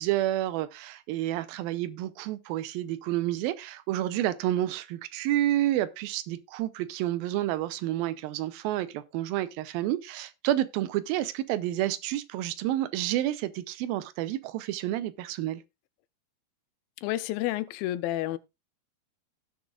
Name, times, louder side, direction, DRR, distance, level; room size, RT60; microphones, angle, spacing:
voice 1, 0.0-15.6, right 14 dB, 85° right, 2.5 m, -29 dB
voice 2, 17.0-18.4, left 15 dB, 85° left, 2.4 m, -30 dB
17.0 x 6.3 x 2.4 m
omnidirectional pair, 4.2 m